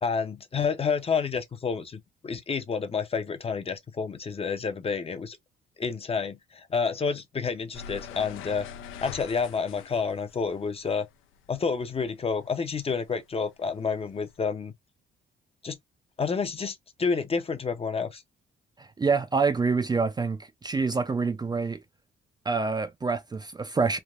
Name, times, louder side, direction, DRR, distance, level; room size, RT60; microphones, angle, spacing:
voice 1, 0.0-5.4 5.8-8.7 9.0-11.1 11.5-14.7 15.6-15.8 16.2-18.2, left 5 dB, 30° left, 0.6 m, -29 dB
sound 1, 7.7-12.4 12.7-14.4, left 8 dB, 85° left, 0.5 m, -44 dB
voice 2, 18.8-21.8 22.5-24.0, right 4 dB, 20° right, 0.4 m, -26 dB
3.3 x 2.1 x 2.4 m
cardioid pair, 90°, 20 cm